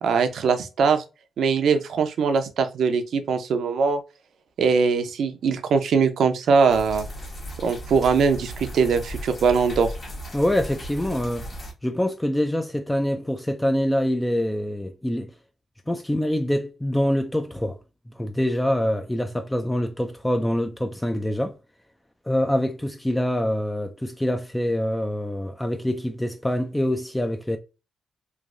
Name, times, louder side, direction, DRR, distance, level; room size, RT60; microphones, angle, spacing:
voice 1, 0.0-1.0 1.4-4.0 4.6-7.1 7.6-9.9, right 5 dB, 75° right, 0.6 m, -21 dB
sound 1, 6.7-11.7, equal, 40° left, 1.2 m, -36 dB
voice 2, 10.3-15.3 15.9-17.8 18.1-21.6 22.3-27.6, left 1 dB, 10° left, 0.4 m, -25 dB
3.2 x 2.5 x 2.5 m
cardioid pair, 80°, 0 cm